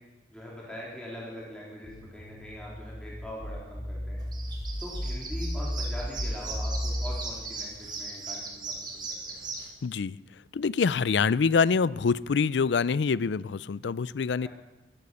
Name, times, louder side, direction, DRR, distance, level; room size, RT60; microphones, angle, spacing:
voice 1, 0.3-4.2 4.8-9.4, left 1 dB, 5° left, -5 dB, 3.7 m, -42 dB
sound 1, 1.8-7.2, equal, 50° left, 8.0 m, -33 dB
sound 2, 4.2-9.7, right 3 dB, 25° right, 3.1 m, -38 dB
voice 2, 9.8-10.2 10.5-14.5, left 5 dB, 80° left, 20 dB, 0.4 m, -25 dB
14.5 x 13.5 x 7.0 m, 1.1 s
head